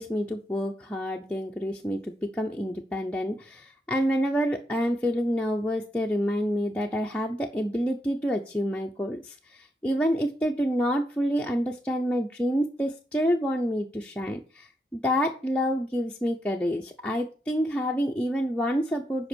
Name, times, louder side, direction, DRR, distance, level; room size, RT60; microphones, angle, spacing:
voice 1, 0.0-19.3, equal, 5° left, -1 dB, 0.6 m, -28 dB
7.7 x 5.2 x 6.2 m, 0.37 s
head